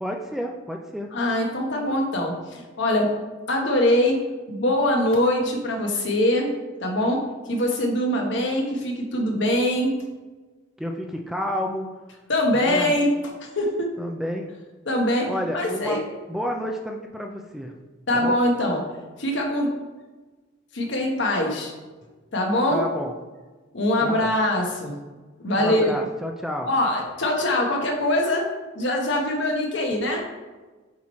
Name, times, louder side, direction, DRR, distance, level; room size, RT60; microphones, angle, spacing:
voice 1, 0.0-1.1 10.8-11.9 12.5-12.9 14.0-14.5 15.3-16.0 16.3-17.7 18.1-18.4 22.7-23.1 24.0-24.3 25.6-26.7, equal, ahead, 2 dB, 0.3 m, -30 dB
voice 2, 1.1-3.2 3.5-4.2 4.5-6.5 6.8-9.9 12.3-13.1 13.5-13.9 14.9-15.3 15.5-16.0 18.1-18.8 19.2-19.7 20.7-21.7 22.3-22.8 23.7-25.0 25.4-25.9 26.7-28.5 28.7-30.2, left 1 dB, 60° left, 1 dB, 1.0 m, -23 dB
7.4 x 3.1 x 4.2 m, 1.3 s
head